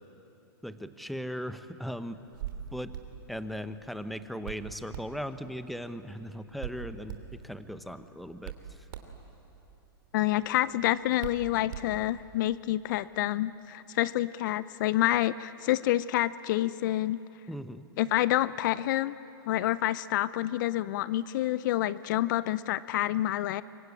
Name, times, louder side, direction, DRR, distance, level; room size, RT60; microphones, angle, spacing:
voice 1, 0.6-2.2 2.7-2.9 3.3-8.5 17.5-17.8, equal, ahead, 11 dB, 1.0 m, -38 dB
Hands, 2.1-12.4, right 9 dB, 55° right, 2.9 m, -45 dB
voice 2, 10.1-17.2 18.0-19.2 19.5-23.6, left 14 dB, 55° left, 18 dB, 0.5 m, -28 dB
25.5 x 23.0 x 9.8 m, 3.0 s
hypercardioid pair, 125°, 13 cm